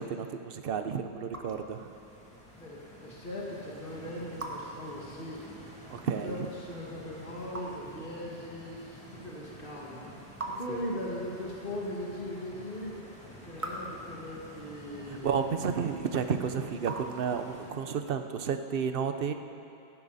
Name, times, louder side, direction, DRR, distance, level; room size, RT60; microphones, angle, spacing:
voice 1, 0.0-1.9 5.9-6.5 10.7-10.8 15.1-19.3, right 6 dB, 60° right, 7 dB, 1.0 m, -32 dB
Raindrop / Drip, 0.6-17.8, right 2 dB, 30° right, 1.5 m, -47 dB
Stream, 1.7-17.7, equal, 5° left, 2.5 m, -50 dB
voice 2, 2.6-5.4 6.2-10.1 10.6-12.9 13.3-15.3, left 1 dB, 55° left, -4 dB, 2.3 m, -39 dB
18.0 x 15.5 x 4.2 m, 2.7 s
omnidirectional pair, 1.1 m